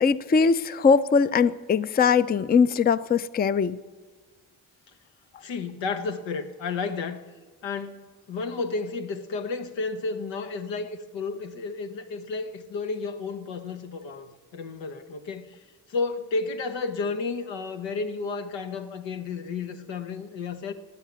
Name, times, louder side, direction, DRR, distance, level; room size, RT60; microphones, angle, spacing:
voice 1, 0.0-3.8, left 5 dB, 25° left, 0.4 m, -21 dB
voice 2, 5.4-7.2 7.6-20.7, left 4 dB, 90° left, 1.2 m, -32 dB
16.0 x 9.2 x 9.5 m
cardioid pair, 80°, 43 cm